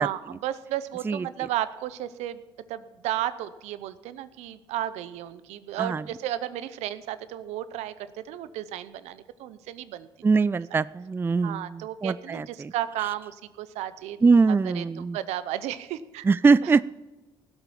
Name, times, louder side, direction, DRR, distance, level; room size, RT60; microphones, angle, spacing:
voice 1, 0.0-2.4 2.7-10.1 11.4-16.2 16.6-16.7, right 12 dB, 80° right, 14 dB, 0.7 m, -33 dB
voice 2, 10.2-12.7 14.2-15.2 16.2-16.8, right 4 dB, 20° right, 18 dB, 0.3 m, -22 dB
16.5 x 8.0 x 7.3 m, 1.2 s
supercardioid pair, 65°, 11 cm